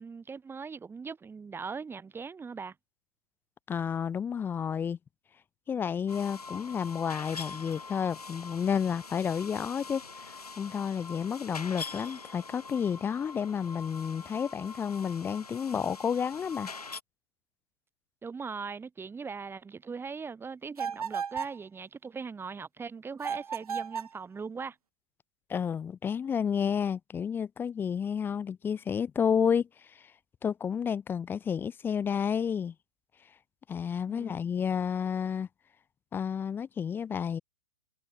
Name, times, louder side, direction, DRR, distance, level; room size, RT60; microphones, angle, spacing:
voice 1, 0.0-2.8 18.2-24.8 34.1-34.4, right 5 dB, 10° right, 7.0 m, -40 dB
voice 2, 3.7-5.0 5.7-10.0 10.6-16.7 25.5-30.0 30.4-32.7 33.7-35.5 36.1-37.4, left 7 dB, 10° left, 0.4 m, -31 dB
sound 1, 6.1-17.0, left 4 dB, 90° left, 2.1 m, -44 dB
sound 2, 20.8-21.6 23.2-24.2, right 6 dB, 75° right, 2.8 m, -34 dB
hypercardioid pair, 120°, 19 cm